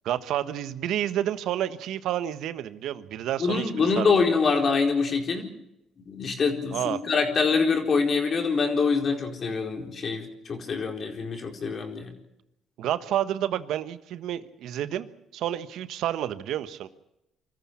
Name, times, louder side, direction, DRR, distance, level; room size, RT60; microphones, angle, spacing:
voice 1, 0.0-4.2 6.7-7.0 12.8-15.1 15.3-16.9, right 11 dB, 70° right, 12 dB, 1.3 m, -30 dB
voice 2, 3.4-5.5 6.1-12.1, left 5 dB, 45° left, 3 dB, 4.5 m, -25 dB
24.5 x 14.5 x 8.7 m, 0.87 s
supercardioid pair, 75°, 0 cm